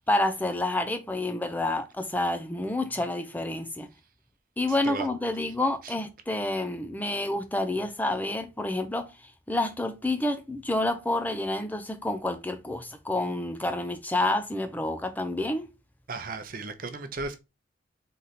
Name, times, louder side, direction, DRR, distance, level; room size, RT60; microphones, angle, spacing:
voice 1, 0.0-3.9 4.6-15.7, left 2 dB, 10° left, 0.5 m, -29 dB
voice 2, 4.7-5.1 5.8-5.9 16.1-17.4, right 3 dB, 50° right, 0.7 m, -35 dB
4.1 x 3.2 x 4.0 m
head